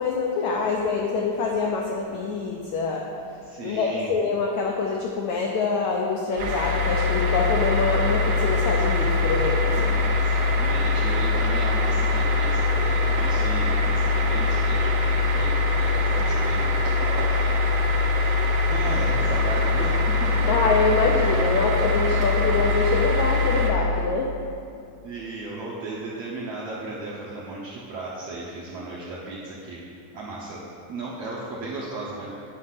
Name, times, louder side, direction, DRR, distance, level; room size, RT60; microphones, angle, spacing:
voice 1, 0.0-3.0 3.6-10.1 20.5-24.3, left 4 dB, 85° left, 0 dB, 1.6 m, -25 dB
voice 2, 3.4-4.1 10.0-17.9 18.7-20.5 25.0-29.8 30.1-30.6 30.9-32.3, right 2 dB, 70° right, -6 dB, 1.6 m, -35 dB
sound 1, 6.4-23.7, left 3 dB, 85° right, 1.4 m, -22 dB
9.8 x 5.4 x 5.8 m, 2.4 s
omnidirectional pair, 4.1 m